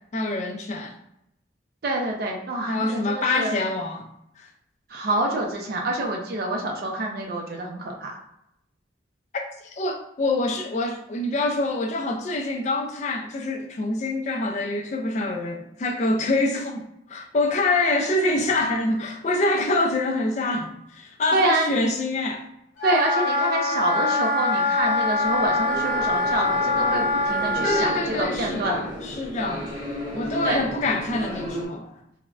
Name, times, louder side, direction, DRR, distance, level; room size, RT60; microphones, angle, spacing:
voice 1, 0.1-0.9 2.7-4.1 4.4-4.5 9.7-22.5 27.6-29.7 30.1-32.0, left 2 dB, 35° left, 0.3 m, -26 dB
voice 2, 1.8-3.5 4.9-8.2 21.3-21.6 22.8-27.9 28.2-28.8 30.4-30.6, right 2 dB, 50° right, 0.4 m, -26 dB
Wind instrument woodwind instrument, 22.8-28.0, left 2 dB, 90° left, 0.6 m, -24 dB
sound 1, 24.8-31.6, equal, 20° right, 0.8 m, -34 dB
3.4 x 2.0 x 2.3 m
head